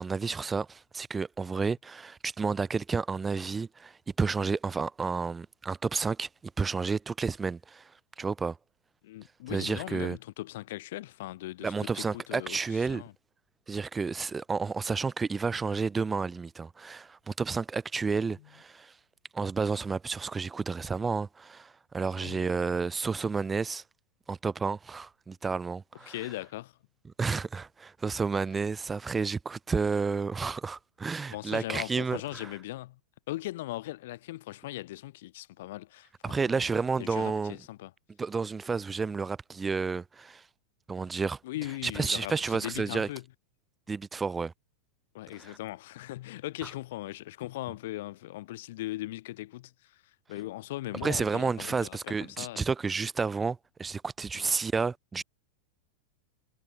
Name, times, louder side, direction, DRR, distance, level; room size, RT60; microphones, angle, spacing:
voice 1, 0.0-6.3 6.6-7.9 8.2-8.6 9.5-10.2 11.6-13.0 13.7-18.9 19.3-23.8 24.3-26.1 27.2-32.2 36.2-37.5 38.2-40.4 40.9-41.4 41.8-43.1 43.9-44.5 51.0-55.2, right 4 dB, 15° right, 1.0 m, -31 dB
voice 2, 9.0-13.1 18.3-18.5 22.2-22.5 25.9-26.8 31.3-33.0 33.3-36.7 37.0-37.9 41.4-43.2 45.1-52.6 54.3-54.5, left 16 dB, 55° left, 1.7 m, -39 dB
figure-of-eight pair, 90°, 0 cm